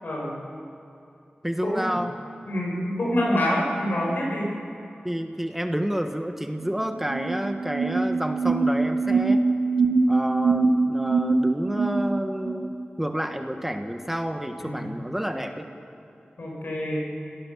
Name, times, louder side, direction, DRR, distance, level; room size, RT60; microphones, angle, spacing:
voice 1, 0.0-0.4 1.6-2.0 2.5-4.6 14.7-14.9 16.4-17.1, left 1 dB, 75° left, -3 dB, 7.2 m, -26 dB
voice 2, 1.4-2.1 5.0-9.5 10.1-15.7, equal, 10° right, 5 dB, 1.4 m, -29 dB
sound 1, 6.6-6.7 7.0-12.7, right 3 dB, 70° right, 1.1 m, -24 dB
27.5 x 18.0 x 7.4 m, 2.7 s
wide cardioid pair, 60°, 3 cm